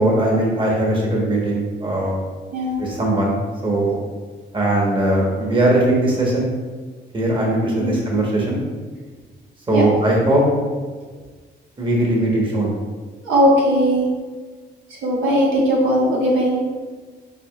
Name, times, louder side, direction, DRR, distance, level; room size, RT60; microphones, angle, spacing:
voice 1, 0.0-2.2 2.8-4.0 4.5-6.5 7.1-8.6 9.7-10.4 11.8-12.7, right 1 dB, 25° right, -3 dB, 1.3 m, -19 dB
voice 2, 13.2-14.1 15.0-16.6, equal, 85° right, -4 dB, 1.3 m, -18 dB
4.9 x 4.4 x 2.4 m, 1.4 s
cardioid pair, 90°, 20 cm